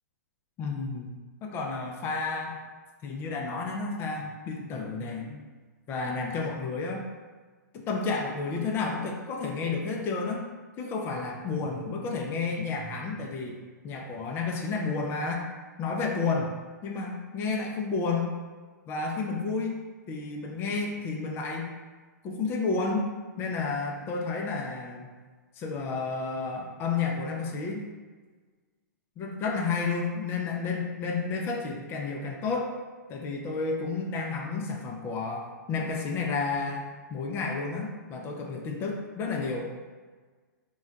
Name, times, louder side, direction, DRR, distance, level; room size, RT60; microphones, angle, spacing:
voice 1, 0.6-1.1 1.4-2.6 3.0-5.4 5.9-7.0 7.9-10.4 10.8-13.6 13.8-15.5 15.8-16.5 16.8-18.3 18.9-19.7 20.1-21.7 22.2-25.1 25.6-27.9 29.2-32.7 33.1-39.7, left 4 dB, 25° left, 1 dB, 0.4 m, -31 dB
2.3 x 2.2 x 3.8 m, 1.4 s
hypercardioid pair, 130°, 10 cm